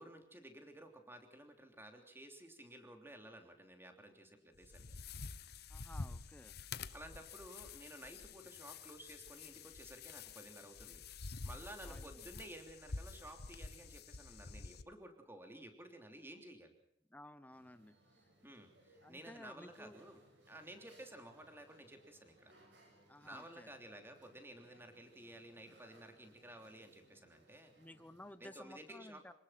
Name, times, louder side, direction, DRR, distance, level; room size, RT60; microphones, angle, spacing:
voice 1, 0.0-4.9 6.9-11.0 11.4-16.7 18.4-22.5 23.2-27.7 28.4-29.2, right 1 dB, 15° right, 5 dB, 3.2 m, -54 dB
sound 1, 4.6-14.8, left 4 dB, 60° left, 1.0 m, -49 dB
voice 2, 5.7-6.6 11.8-12.3 17.1-18.0 19.0-20.0 23.1-23.7 27.8-29.3, left 1 dB, 10° left, 13 dB, 0.9 m, -55 dB
sound 2, 17.5-28.3, right 1 dB, 70° right, 6.4 m, -67 dB
27.5 x 19.0 x 5.9 m, 0.73 s
head